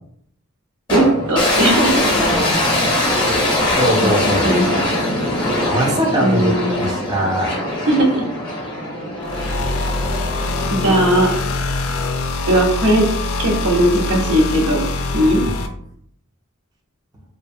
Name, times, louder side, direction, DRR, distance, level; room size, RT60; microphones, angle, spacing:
sound 1, 0.9-12.1, left 1 dB, 20° left, 0.6 m, -21 dB
voice 1, 0.9-2.1 4.4-4.6 6.2-6.9 7.9-8.2 10.7-11.3 12.5-13.0 13.4-14.8 15.1-15.4, right 1 dB, 80° right, 0 dB, 0.7 m, -17 dB
voice 2, 3.7-4.5 5.7-7.6, right 1 dB, 20° right, -2 dB, 0.4 m, -21 dB
sound 2, 9.2-15.7, left 2 dB, 75° left, 0.4 m, -24 dB
2.6 x 2.1 x 2.6 m, 0.68 s
head